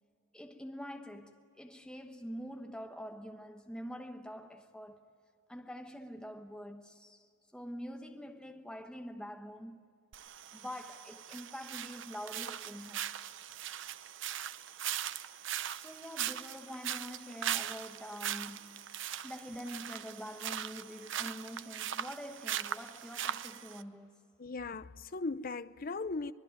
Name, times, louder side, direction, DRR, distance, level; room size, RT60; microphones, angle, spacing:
voice 1, 0.3-5.1 5.5-7.2 7.5-9.8 10.5-13.1 15.7-18.8 19.2-24.2, equal, 5° left, 1.1 m, -45 dB
sound 1, 10.1-23.8, right 10 dB, 65° right, 0.7 m, -40 dB
voice 2, 24.4-26.3, left 3 dB, 45° left, 0.7 m, -38 dB
24.0 x 22.0 x 9.1 m
head